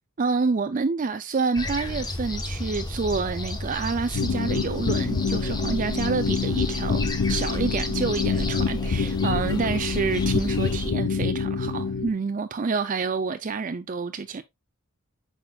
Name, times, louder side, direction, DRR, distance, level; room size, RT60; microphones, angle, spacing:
voice 1, 0.2-14.4, right 4 dB, 40° right, 0.4 m, -28 dB
sound 1, 1.5-10.9, left 1 dB, 20° left, 1.0 m, -32 dB
sound 2, 4.1-12.1, left 5 dB, 70° left, 0.5 m, -26 dB
8.8 x 5.7 x 2.3 m
head